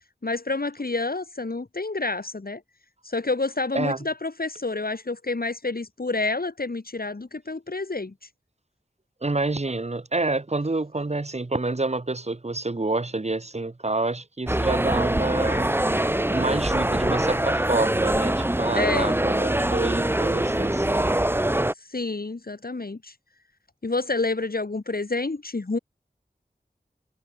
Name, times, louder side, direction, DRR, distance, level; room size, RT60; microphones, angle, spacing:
voice 1, 0.2-2.6 3.0-8.3 18.7-19.2 21.8-23.1 23.8-25.8, left 3 dB, 60° left, 2.2 m, -28 dB
voice 2, 3.7-4.0 9.2-15.8 16.3-21.2, right 2 dB, 40° right, 1.2 m, -28 dB
sound 1, 14.5-21.7, right 1 dB, 15° right, 0.9 m, -24 dB
wide cardioid pair, 55°, 17 cm